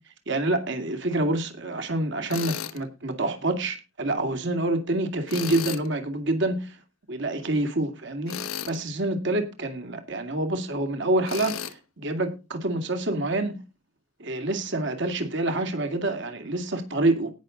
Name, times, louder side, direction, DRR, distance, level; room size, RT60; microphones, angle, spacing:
voice 1, 0.3-6.7 7.1-8.4 8.7-13.6 14.2-17.3, right 2 dB, 60° right, 7 dB, 2.4 m, -27 dB
Tools, 2.3-2.8 5.3-5.9 8.3-8.8 11.3-11.7, left 8 dB, 85° left, 1.1 m, -33 dB
18.0 x 6.4 x 3.9 m, 0.28 s
head